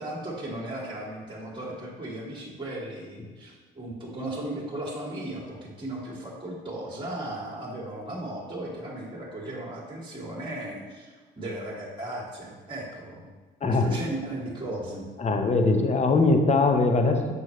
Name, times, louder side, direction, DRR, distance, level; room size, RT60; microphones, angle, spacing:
voice 1, 0.0-13.3 13.6-15.1, right 1 dB, 25° right, -4 dB, 1.7 m, -36 dB
voice 2, 13.6-14.0 15.2-17.3, left 3 dB, 35° left, 5 dB, 0.9 m, -21 dB
6.4 x 5.3 x 3.2 m, 1.4 s
supercardioid pair, 65°, 21 cm